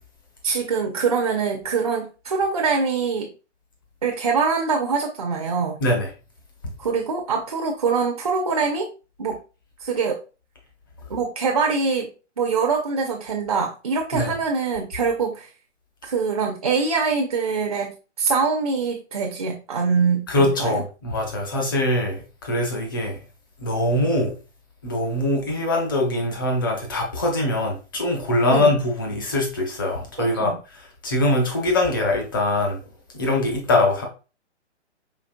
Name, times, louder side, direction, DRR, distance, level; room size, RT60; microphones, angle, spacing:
voice 1, 0.4-3.3 4.0-5.8 6.8-8.9 9.2-9.4 9.8-10.2 11.1-12.1 12.4-15.5 16.0-20.8 28.5-28.7 30.2-30.6, right 5 dB, 35° right, 0.4 m, -24 dB
voice 2, 5.8-6.1 14.1-14.3 20.3-23.2 23.6-24.3 24.8-32.8 33.1-34.0, left 1 dB, 20° left, 0.5 m, -23 dB
5.1 x 2.9 x 2.5 m
hypercardioid pair, 170°, 35 cm